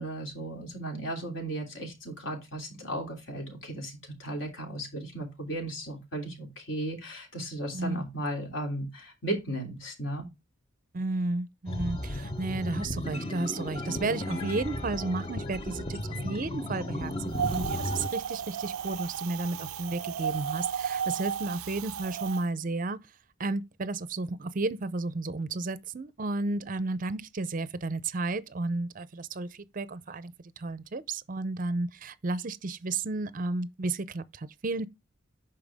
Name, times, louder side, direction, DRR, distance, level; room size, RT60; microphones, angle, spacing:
voice 1, 0.0-10.3, right 1 dB, 60° left, 3.2 m, -35 dB
voice 2, 7.7-8.0 10.9-23.0 23.4-34.9, right 3 dB, 40° right, 0.5 m, -33 dB
sound 1, 11.7-18.1, left 1 dB, 25° left, 0.7 m, -35 dB
Wind, 17.3-22.4, right 8 dB, 90° right, 0.4 m, -34 dB
9.0 x 5.7 x 3.5 m
head